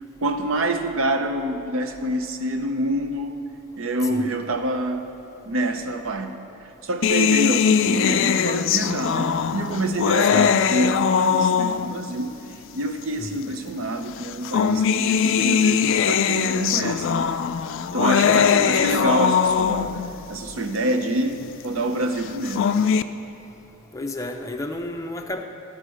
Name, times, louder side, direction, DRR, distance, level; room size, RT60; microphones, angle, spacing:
voice 1, 0.2-3.4 3.8-5.1 5.5-6.4 6.8-12.4 12.7-17.3 17.9-20.0 20.3-22.7, right 1 dB, 65° right, 7 dB, 0.7 m, -26 dB
sound 1, 7.0-12.1 13.0-13.1 14.2-20.1 22.3-23.0, left 7 dB, 65° left, 0.3 m, -21 dB
voice 2, 18.2-19.0 23.9-25.4, left 2 dB, 15° left, 3 dB, 0.6 m, -32 dB
13.5 x 5.6 x 6.3 m, 2.8 s
head